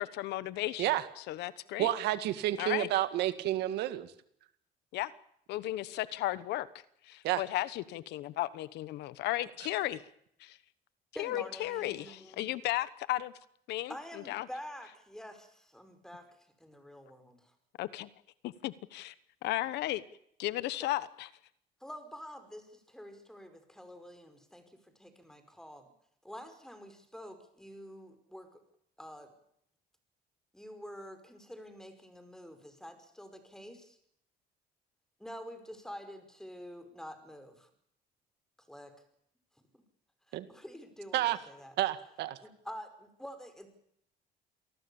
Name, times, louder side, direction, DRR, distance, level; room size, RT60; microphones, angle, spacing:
voice 1, 0.0-1.9 2.6-2.9 4.9-5.1 5.5-6.7 7.0-10.0 10.4-10.6 11.2-13.3 13.7-13.9 14.3-14.5 17.8-18.1 18.4-19.1 19.4-20.0 20.4-21.3, left 15 dB, 85° left, 17 dB, 1.2 m, -35 dB
voice 2, 1.8-4.1 7.2-7.4 40.3-40.5 41.1-41.4 41.8-42.4, right 14 dB, 85° right, 12 dB, 1.8 m, -30 dB
voice 3, 11.1-12.5 13.9-17.6 20.8-20.9 21.8-25.9 26.2-28.6 29.0-29.3 30.5-34.0 35.2-37.7 38.7-38.9 39.7-39.8 40.3-41.7 42.4-43.7, equal, 5° left, 8 dB, 5.2 m, -48 dB
28.0 x 19.0 x 7.2 m, 0.72 s
cardioid pair, 110°, 17 cm